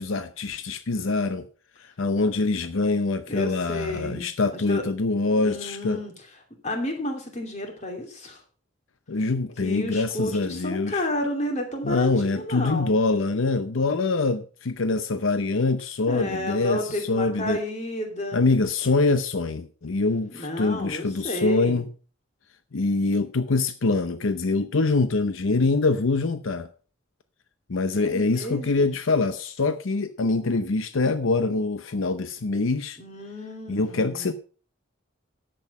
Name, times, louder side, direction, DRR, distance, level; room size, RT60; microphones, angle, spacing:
voice 1, 0.0-1.4 1.8-6.0 9.1-11.0 11.8-16.8 17.1-17.6 18.3-21.9 22.7-26.7 27.7-33.0 33.7-34.3, left 3 dB, 80° left, 0.7 m, -24 dB
voice 2, 3.3-4.8 5.4-6.3 6.6-8.4 9.6-12.9 16.1-18.4 20.3-21.8 28.0-28.9 33.0-34.3, left 1 dB, 35° left, 2.8 m, -32 dB
11.0 x 7.9 x 5.4 m
head